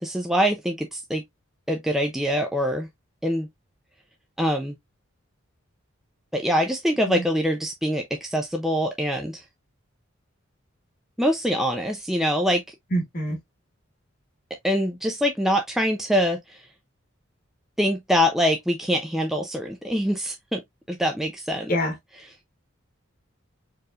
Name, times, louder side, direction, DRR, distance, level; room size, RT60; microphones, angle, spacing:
voice 1, 0.0-1.2 1.7-2.9 3.2-3.5 4.4-4.7 6.3-9.4 11.2-12.7 14.6-16.6 17.8-20.6 20.9-21.7, equal, ahead, 0.4 m, -24 dB
voice 2, 12.9-13.4 21.7-21.9, equal, 45° left, 1.2 m, -25 dB
4.6 x 3.2 x 2.3 m
head